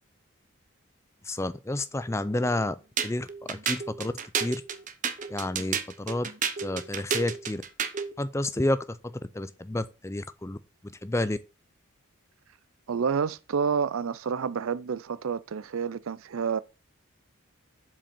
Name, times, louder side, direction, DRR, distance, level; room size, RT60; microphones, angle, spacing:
voice 1, 1.2-2.8 3.0-4.6 5.3-6.3 6.6-7.6 8.2-10.6 10.8-11.4, left 1 dB, 10° left, 0.4 m, -30 dB
sound 1, 3.0-8.1, right 7 dB, 35° right, 0.7 m, -31 dB
voice 2, 12.9-16.6, right 6 dB, 70° right, 0.4 m, -29 dB
7.3 x 5.2 x 6.8 m
head